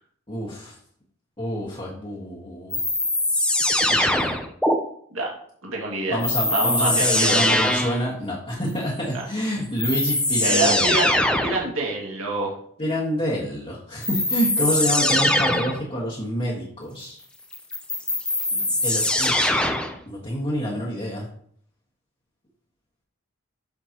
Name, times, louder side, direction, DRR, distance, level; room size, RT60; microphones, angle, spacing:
voice 1, 0.3-0.8 1.4-2.8 3.9-4.3 6.1-11.0 12.8-17.2 18.8-19.7 20.1-21.3, equal, 30° left, -7 dB, 1.5 m, -27 dB
sound 1, 2.7-4.8 6.2-8.0 9.3-9.4 9.8-11.6 14.0-15.8 17.5-20.0, left 1 dB, 5° left, 0.5 m, -22 dB
voice 2, 5.6-6.2 6.5-7.6 9.1-9.2 10.4-11.2 11.4-12.6 18.5-18.7, right 2 dB, 80° right, -2 dB, 2.0 m, -26 dB
7.1 x 6.7 x 2.9 m, 0.62 s
head